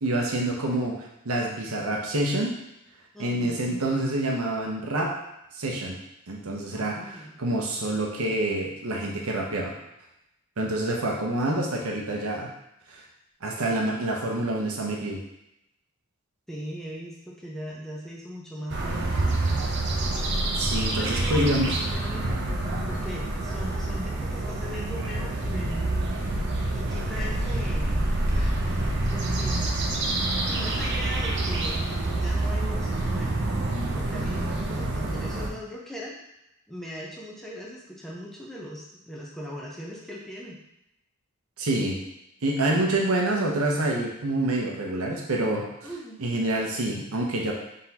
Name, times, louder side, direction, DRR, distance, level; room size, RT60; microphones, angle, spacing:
voice 1, 0.0-2.6 3.2-5.1 5.5-6.0 6.3-9.7 10.6-12.5 12.9-13.0 13.4-15.2 20.6-21.8 41.6-42.0 42.4-45.6 46.2-47.5, right 1 dB, 80° right, -1 dB, 0.8 m, -27 dB
voice 2, 3.1-4.0 6.7-7.4 16.5-19.3 21.0-22.4 22.9-25.9 26.7-29.7 30.5-33.4 33.9-36.2 36.7-40.6 45.8-46.2, equal, ahead, -4 dB, 0.6 m, -39 dB
sound 1, 18.7-35.5, right 2 dB, 50° right, 0.6 m, -27 dB
3.9 x 3.6 x 2.8 m, 0.84 s
head